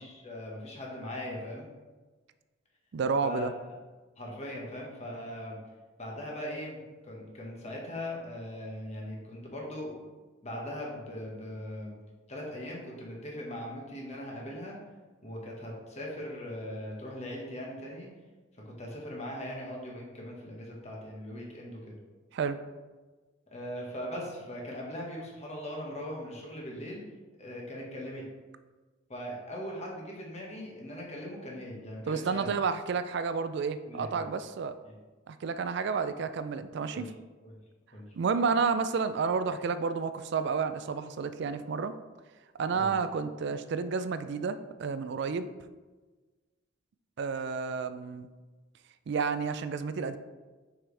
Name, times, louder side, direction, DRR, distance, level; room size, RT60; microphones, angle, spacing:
voice 1, 0.0-1.7 3.2-3.5 4.2-5.6 6.0-6.8 7.0-10.0 10.4-11.9 12.3-14.8 15.2-18.1 18.6-22.0 23.5-27.0 27.4-28.2 29.1-32.5 33.9-34.3 34.9-35.0 36.9-37.1 37.4-37.5 37.9-38.1 42.7-42.9, left 1 dB, 35° left, -2 dB, 1.4 m, -40 dB
voice 2, 2.9-3.5 22.3-22.6 32.1-34.8 35.3-37.1 38.2-41.9 42.6-45.5 47.2-48.3 49.1-50.2, right 5 dB, 60° right, 11 dB, 0.4 m, -30 dB
6.0 x 5.0 x 3.3 m, 1.3 s
head